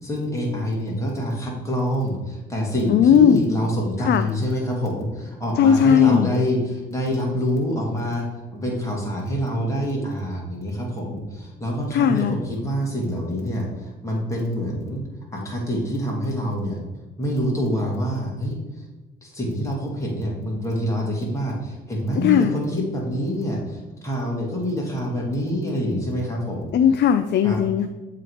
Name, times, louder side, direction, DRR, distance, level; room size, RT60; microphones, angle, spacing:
voice 1, 0.0-15.0 15.3-16.8 17.2-18.6 19.2-26.7 27.4-27.6, equal, 15° left, -3 dB, 2.4 m, -26 dB
voice 2, 2.9-3.4 4.0-4.3 5.6-6.3 11.9-12.4 22.2-22.6 26.7-27.9, left 8 dB, 60° left, 9 dB, 0.4 m, -17 dB
7.6 x 3.8 x 4.8 m, 1.1 s
cardioid pair, 90°, 20 cm